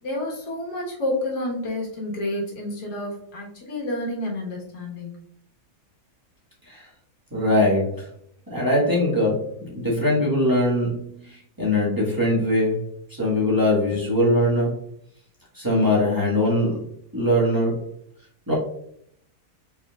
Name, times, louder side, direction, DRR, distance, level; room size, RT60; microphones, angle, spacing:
voice 1, 0.0-5.1, left 1 dB, 85° left, -2 dB, 1.9 m, -29 dB
voice 2, 7.3-8.1 8.5-9.4 9.7-12.8 13.2-14.7 15.5-16.8 17.1-17.8 18.5-18.6, left 1 dB, 15° right, -6 dB, 1.4 m, -21 dB
5.2 x 4.3 x 2.3 m, 0.70 s
omnidirectional pair, 1.7 m